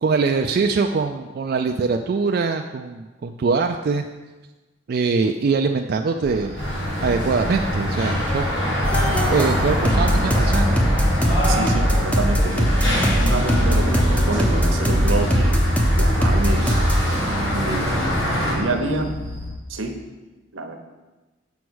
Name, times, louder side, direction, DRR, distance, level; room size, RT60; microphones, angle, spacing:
voice 1, 0.0-4.0 4.9-6.6 7.0-8.5 9.3-10.8, right 4 dB, 50° right, 4 dB, 0.3 m, -22 dB
sound 1, 6.2-19.5, right 1 dB, 25° left, 2.5 m, -38 dB
sound 2, 6.6-18.5, equal, 60° left, 2.5 m, -25 dB
sound 3, 8.8-19.6, equal, 5° left, 0.7 m, -21 dB
voice 2, 11.5-12.7 13.1-15.6 16.0-16.8 17.5-19.1 19.7-20.0 20.5-20.8, right 2 dB, 85° right, 5 dB, 0.8 m, -27 dB
6.1 x 4.7 x 6.2 m, 1.2 s
head